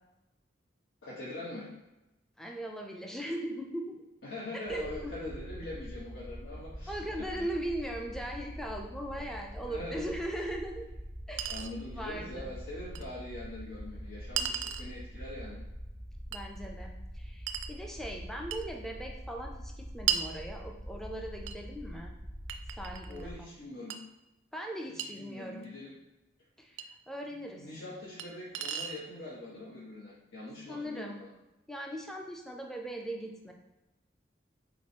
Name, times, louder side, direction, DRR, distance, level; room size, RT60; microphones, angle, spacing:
voice 1, 1.0-1.7 4.2-7.1 7.4-7.5 9.2-9.3 9.6-10.1 11.4-15.6 23.1-24.0 24.9-26.0 27.6-31.3, left 2 dB, 85° left, -7 dB, 1.0 m, -43 dB
voice 2, 2.4-4.0 4.7-5.3 6.9-10.9 11.3-11.6 12.0-12.5 16.3-22.2 22.8-23.5 24.5-25.7 26.6-27.7 30.7-31.2 31.7-33.5, right 1 dB, ahead, 1 dB, 0.4 m, -39 dB
sound 1, 4.7-23.3, equal, 25° left, 0.9 m, -44 dB
Chink clink, 10.4-10.5 11.4-11.7 13.0-13.1 14.4-14.9 16.3-16.5 17.5-17.8 18.5-18.7 20.1-20.3 21.5-21.6 22.5-23.2 23.9-24.0 25.0-25.1 26.8-26.9 28.2-28.3 28.5-29.0, right 9 dB, 75° right, 0.3 m, -34 dB
4.0 x 3.0 x 4.3 m, 0.97 s
head